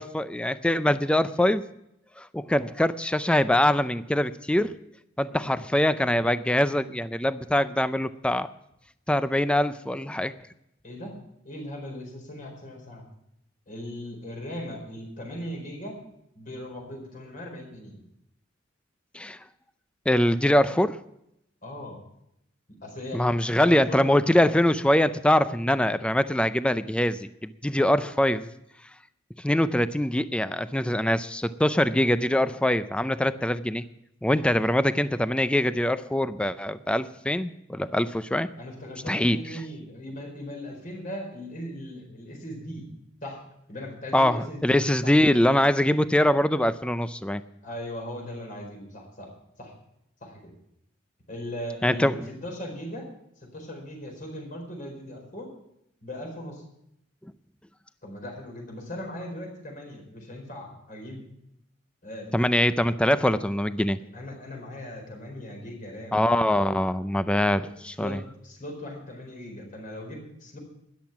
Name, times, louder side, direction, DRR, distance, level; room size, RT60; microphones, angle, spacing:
voice 1, 0.0-1.6 2.2-4.7 5.2-8.5 9.1-10.3 19.1-19.4 20.1-21.0 23.1-28.5 29.4-33.8 34.2-38.5 39.1-39.4 44.1-47.4 51.8-52.1 62.3-64.0 66.1-68.2, left 1 dB, 5° left, 13 dB, 0.4 m, -23 dB
voice 2, 10.8-11.2 11.4-13.0 13.7-16.0 16.3-18.0 21.6-22.0 22.8-24.1 38.6-42.9 43.2-43.4 43.7-45.1 47.6-49.3 49.6-49.7 50.2-50.5 51.3-53.1 53.4-55.5 56.0-56.6 58.0-61.3 62.0-62.5 64.1-66.3 67.6-70.6, equal, 45° left, 1 dB, 4.5 m, -39 dB
13.5 x 10.5 x 5.8 m, 0.79 s
head